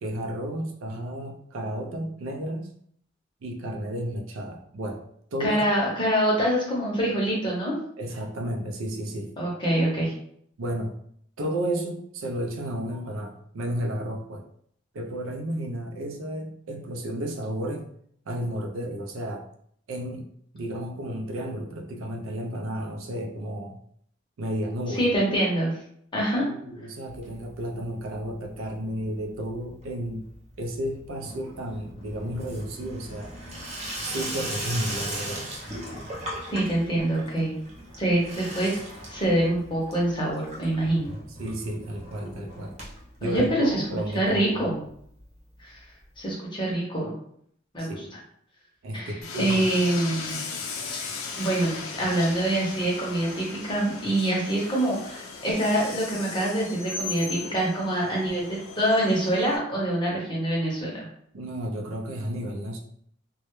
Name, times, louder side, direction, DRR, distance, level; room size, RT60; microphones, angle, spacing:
voice 1, 0.0-2.7 3.4-5.0 5.3-5.7 8.0-9.3 10.6-11.0 11.4-14.4 14.9-17.9 18.3-19.5 19.9-20.2 20.5-23.8 24.4-25.1 26.4-30.3 30.6-33.3 34.0-35.4 41.4-42.7 43.2-44.7 47.8-48.2 48.8-49.7 61.3-62.8, right 1 dB, 85° right, 3 dB, 0.4 m, -32 dB
voice 2, 5.4-7.7 9.4-10.1 24.9-25.7 26.1-26.5 36.5-37.5 38.0-38.7 39.1-41.1 43.2-43.8 44.1-44.8 45.6-45.8 46.2-47.1 47.7-47.9 48.9-50.4 51.0-51.1 51.4-61.1, right 1 dB, 25° left, -4 dB, 0.7 m, -25 dB
Water tap faucet / Sink (filling or washing), 27.1-27.9 28.1-28.7 29.0-44.2 44.6-44.7 44.9-45.0 45.2-45.3 46.3-46.4, right 1 dB, 30° right, 0.6 m, -38 dB
Train, 49.2-59.6, left 4 dB, 85° left, 0.4 m, -37 dB
2.1 x 2.1 x 3.0 m, 0.66 s
head